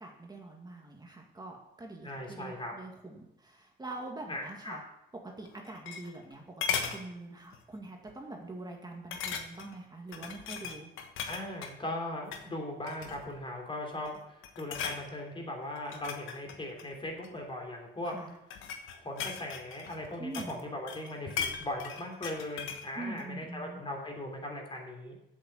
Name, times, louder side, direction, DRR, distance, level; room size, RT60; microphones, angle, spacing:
voice 1, 0.0-4.8 5.2-10.9 18.0-18.4 20.2-20.6 23.0-23.8, right 2 dB, 20° right, 0 dB, 1.9 m, -44 dB
voice 2, 2.0-2.7 4.3-4.8 11.2-18.1 18.9-25.2, left 1 dB, 25° left, 1 dB, 3.3 m, -39 dB
sound 1, 5.4-6.3 6.6-7.0 7.5-7.7 8.1-8.2 9.1-9.7 10.1-11.7 12.2-12.5 12.9-13.4 13.9-14.2 14.4-15.0 15.7-17.4 18.2-20.6 20.9-22.9 23.2-23.3, left 7 dB, 90° left, 1.2 m, -37 dB
8.2 x 7.6 x 7.1 m, 0.86 s
cardioid pair, 90°, 20 cm